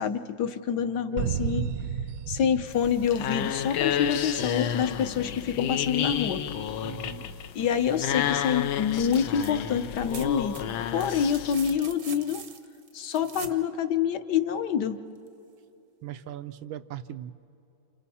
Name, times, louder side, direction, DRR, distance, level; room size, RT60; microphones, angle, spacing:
voice 1, 0.0-1.7 2.3-6.4 7.5-10.6 10.9-12.4 12.9-15.0, left 8 dB, 60° left, 9 dB, 1.4 m, -27 dB
sound 1, 1.2-3.9, right 8 dB, 65° right, 1.2 m, -32 dB
sound 2, 2.7-11.8, left 9 dB, 80° left, 1.5 m, -31 dB
voice 2, 6.8-7.4 16.0-17.3, right 11 dB, 85° right, 11 dB, 1.5 m, -39 dB
sound 3, 8.9-9.5 9.8-13.6 15.3-15.4, right 6 dB, 45° right, 0.8 m, -44 dB
29.5 x 28.5 x 4.3 m, 2.7 s
omnidirectional pair, 2.2 m